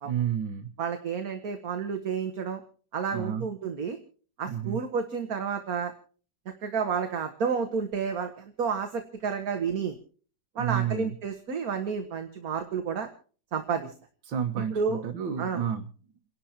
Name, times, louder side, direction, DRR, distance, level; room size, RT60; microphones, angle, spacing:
voice 1, 0.1-0.7 3.1-3.5 4.5-4.8 10.6-11.1 14.3-15.9, right 9 dB, 80° right, 3 dB, 1.9 m, -30 dB
voice 2, 0.8-2.6 2.9-4.0 4.4-5.9 6.6-8.3 8.6-10.0 10.6-13.1 13.5-13.9 14.7-15.0 15.4-15.6, right 6 dB, 50° right, 6 dB, 1.8 m, -30 dB
29.5 x 11.5 x 2.9 m, 0.43 s
omnidirectional pair, 2.1 m